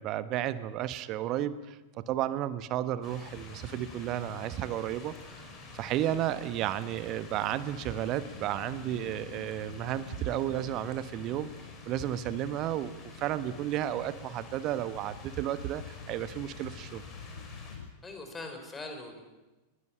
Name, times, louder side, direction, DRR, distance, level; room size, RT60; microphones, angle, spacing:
voice 1, 0.0-5.2 5.7-11.5 11.8-17.0, right 12 dB, 40° right, 14 dB, 1.1 m, -33 dB
sound 1, 3.0-17.8, left 3 dB, 30° left, 5.7 m, -49 dB
sound 2, 7.1-17.9, left 6 dB, 70° left, 1.3 m, -48 dB
voice 2, 18.0-19.2, left 2 dB, 15° left, 5 dB, 5.1 m, -41 dB
22.0 x 18.5 x 8.9 m, 1.1 s
figure-of-eight pair, 90°, 0 cm